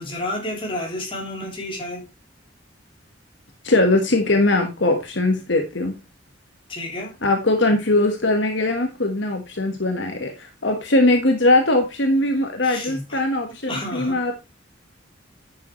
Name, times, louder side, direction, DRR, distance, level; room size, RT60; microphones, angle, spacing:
voice 1, 0.0-2.1 6.7-7.1 12.6-13.2 13.7-14.2, left 1 dB, 30° left, 3.3 m, -30 dB
voice 2, 3.6-6.0 7.2-14.3, left 2 dB, 65° left, 1.5 m, -20 dB
10.5 x 6.6 x 3.1 m
head